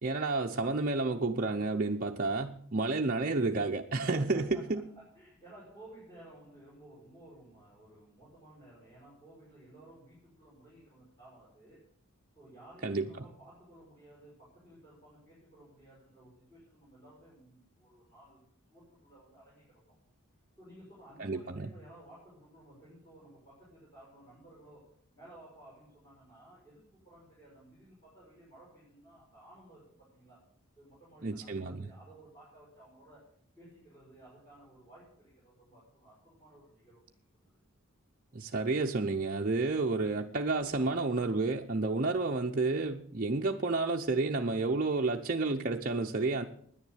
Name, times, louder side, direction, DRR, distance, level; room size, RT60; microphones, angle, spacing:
voice 1, 0.0-4.8 12.8-13.0 21.2-21.7 31.2-31.9 38.3-46.4, right 3 dB, 40° right, 0.7 m, -30 dB
voice 2, 4.1-11.8 12.3-20.0 20.6-30.5 30.8-37.6, right 1 dB, 15° left, 5.8 m, -56 dB
10.5 x 10.0 x 7.9 m
head